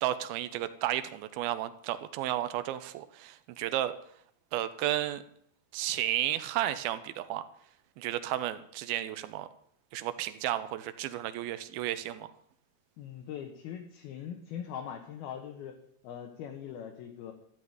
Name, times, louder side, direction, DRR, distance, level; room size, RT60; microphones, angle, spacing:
voice 1, 0.0-3.9 4.5-5.2 5.7-7.4 8.0-9.5 9.9-12.3, right 13 dB, 75° right, 13 dB, 2.4 m, -33 dB
voice 2, 13.0-15.8 16.0-17.3, left 9 dB, 70° left, 3 dB, 2.8 m, -41 dB
13.5 x 6.1 x 9.4 m, 0.66 s
omnidirectional pair, 4.9 m